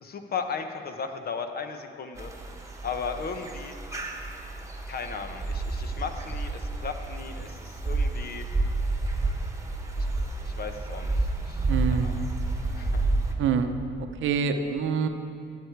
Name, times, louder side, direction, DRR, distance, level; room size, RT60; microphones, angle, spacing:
voice 1, 0.0-2.3 2.8-3.8 4.9-8.5 10.0-10.1 10.4-12.3 12.8-13.1, left 5 dB, 50° left, 7 dB, 0.9 m, -36 dB
sound 1, 2.2-13.3, right 2 dB, 15° right, 1.3 m, -30 dB
voice 2, 11.7-12.2 13.4-13.7 14.2-15.1, right 6 dB, 80° right, 7 dB, 0.8 m, -25 dB
13.0 x 8.3 x 4.6 m, 2.5 s
cardioid pair, 90°, 20 cm